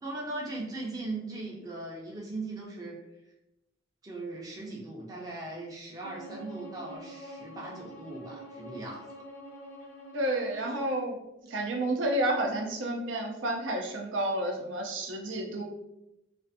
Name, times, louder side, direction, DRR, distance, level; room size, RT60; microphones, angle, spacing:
voice 1, 0.0-3.0 4.0-9.2 10.5-10.8, right 2 dB, 20° right, -3 dB, 0.5 m, -39 dB
Bowed string instrument, 6.0-11.1, equal, 60° left, 0.8 m, -45 dB
voice 2, 10.1-11.2 11.5-15.6, right 1 dB, 85° right, 1 dB, 0.5 m, -30 dB
2.5 x 2.4 x 2.5 m, 0.91 s
head